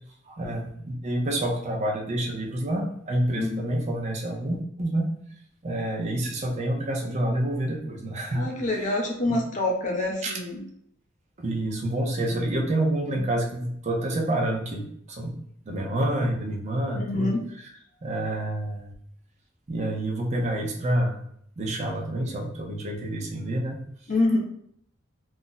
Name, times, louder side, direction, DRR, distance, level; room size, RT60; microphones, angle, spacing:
voice 1, 0.3-5.1 5.6-9.0 9.3-9.4 10.2-10.3 11.4-15.4 15.7-17.7 18.0-18.9 19.7-21.2 21.6-23.8, right 1 dB, 35° right, -1 dB, 0.5 m, -28 dB
voice 2, 8.3-10.6 13.1-13.2 16.9-17.4 24.1-24.4, left 2 dB, 40° left, -1 dB, 0.6 m, -26 dB
2.4 x 2.0 x 3.8 m, 0.68 s
head